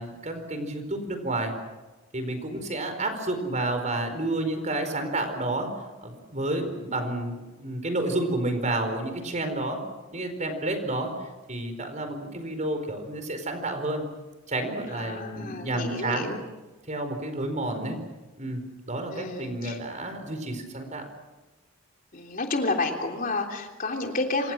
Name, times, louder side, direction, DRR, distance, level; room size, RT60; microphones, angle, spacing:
voice 1, 0.0-1.5 2.1-5.7 6.0-9.8 10.1-14.0 14.5-16.3 16.9-18.0 18.4-21.0, right 2 dB, 35° right, 7 dB, 4.7 m, -30 dB
voice 2, 14.9-16.4 19.1-19.8 22.1-24.5, left 2 dB, 45° left, 2 dB, 3.3 m, -30 dB
27.5 x 27.0 x 6.3 m, 1.2 s
head